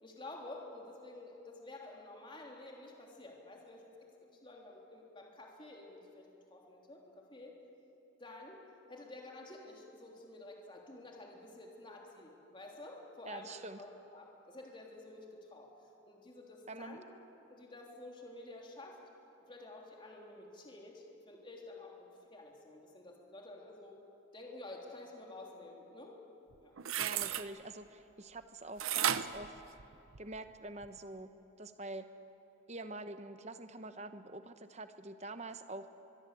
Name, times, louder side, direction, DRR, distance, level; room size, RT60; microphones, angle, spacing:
voice 1, 0.0-7.5 8.2-8.6 8.9-17.1 17.5-19.0 19.4-24.0 24.3-26.1 26.6-26.7, left 2 dB, 25° left, 0 dB, 3.3 m, -51 dB
voice 2, 13.2-13.8 16.7-17.0 27.0-29.6 30.2-31.3 31.6-32.0 32.7-35.9, right 2 dB, 35° right, 9 dB, 0.9 m, -46 dB
sound 1, 26.5-27.5 28.8-30.4 30.8-30.9, right 10 dB, 90° right, 0.9 m, -34 dB
23.5 x 23.5 x 8.5 m, 2.9 s
head